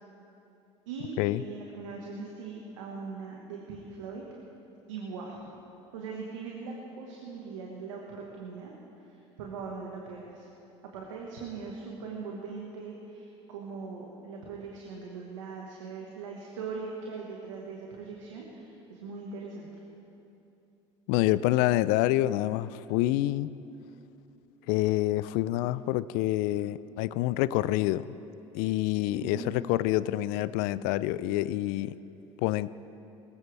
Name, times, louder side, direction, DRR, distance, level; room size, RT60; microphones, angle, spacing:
voice 1, 0.9-4.2 4.9-5.4 5.9-10.5 10.9-19.7 29.2-29.5, right 4 dB, 85° right, -1 dB, 1.6 m, -40 dB
voice 2, 21.1-23.5 24.7-28.1 28.5-31.9 32.4-32.7, left 15 dB, 70° left, 17 dB, 0.5 m, -27 dB
20.0 x 15.5 x 3.5 m, 2.8 s
hypercardioid pair, 75°, 16 cm